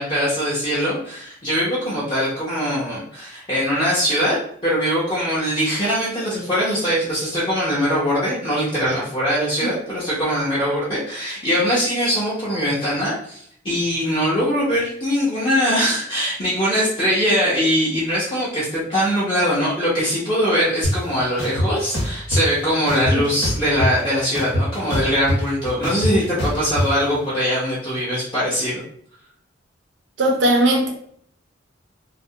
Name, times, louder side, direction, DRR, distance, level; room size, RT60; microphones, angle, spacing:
voice 1, 0.0-4.4 4.6-28.8, equal, 25° left, -9 dB, 0.6 m, -22 dB
sound 1, 20.8-20.9 21.4-22.4 22.9-24.0 24.3-26.9, equal, 85° left, 1.0 m, -22 dB
voice 2, 30.2-30.9, right 1 dB, 70° right, 0 dB, 0.5 m, -18 dB
2.4 x 2.0 x 2.6 m, 0.66 s
head